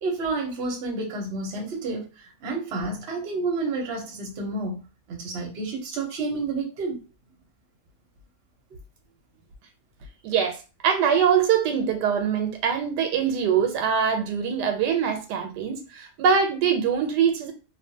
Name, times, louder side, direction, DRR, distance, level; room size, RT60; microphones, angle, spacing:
voice 1, 0.0-7.0, right 3 dB, 50° right, 0.9 m, -30 dB
voice 2, 10.2-10.6 10.8-17.5, right 7 dB, 85° right, 1.2 m, -23 dB
2.5 x 2.5 x 2.7 m
omnidirectional pair, 1.8 m